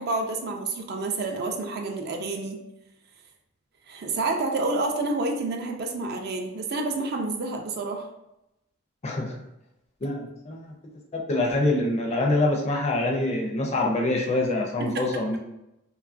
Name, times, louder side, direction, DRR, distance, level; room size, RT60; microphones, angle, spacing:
voice 1, 0.0-2.6 3.9-8.1 14.8-15.0, right 3 dB, 50° right, 3 dB, 0.4 m, -29 dB
voice 2, 9.0-9.3 10.0-10.7 11.3-15.4, left 2 dB, 30° left, 1 dB, 0.4 m, -25 dB
2.9 x 2.3 x 2.4 m, 0.88 s
head